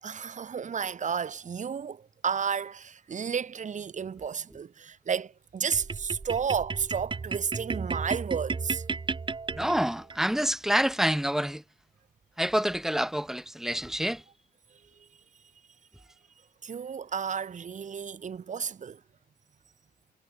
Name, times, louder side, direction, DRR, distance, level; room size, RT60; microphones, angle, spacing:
voice 1, 0.0-8.8 16.6-19.0, right 7 dB, 45° right, 6.4 m, -32 dB
sound 1, 5.7-10.2, right 4 dB, 30° right, 5.3 m, -34 dB
voice 2, 9.5-11.6 12.4-14.2, equal, ahead, 1.1 m, -27 dB
cardioid pair, 110°, 17 cm